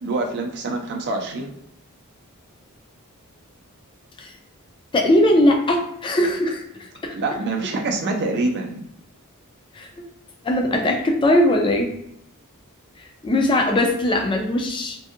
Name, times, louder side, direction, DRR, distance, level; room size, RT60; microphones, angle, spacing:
voice 1, 0.0-1.5 7.1-8.8, right 2 dB, 50° right, 1 dB, 0.4 m, -25 dB
voice 2, 4.9-6.6 7.0-7.2 9.7-9.9 10.4-11.9 13.2-15.0, left 1 dB, 20° left, 2 dB, 0.4 m, -19 dB
2.6 x 2.5 x 2.4 m, 0.75 s
head